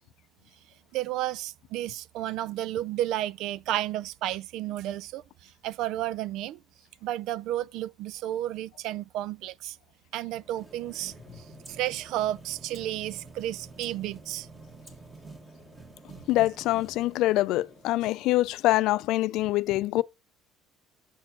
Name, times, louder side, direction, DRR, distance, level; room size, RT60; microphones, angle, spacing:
voice 1, 0.9-6.6 7.0-9.8 10.1-14.5, right 13 dB, 65° right, 0.3 m, -32 dB
sound 1, 10.3-18.5, right 3 dB, 15° right, 1.6 m, -49 dB
voice 2, 16.3-20.0, left 17 dB, 65° left, 0.4 m, -25 dB
7.1 x 4.4 x 5.8 m
cardioid pair, 150°, 0 cm